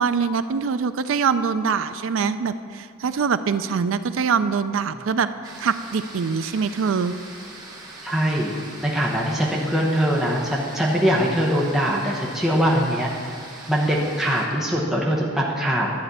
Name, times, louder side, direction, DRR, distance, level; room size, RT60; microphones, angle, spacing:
voice 1, 0.0-7.1, right 6 dB, 70° right, 12 dB, 0.4 m, -24 dB
sound 1, 5.4-14.4, right 2 dB, 20° right, 1.3 m, -41 dB
voice 2, 8.0-8.5 8.8-13.1 13.7-15.9, equal, ahead, -4 dB, 0.9 m, -22 dB
11.5 x 4.3 x 8.0 m, 2.2 s
head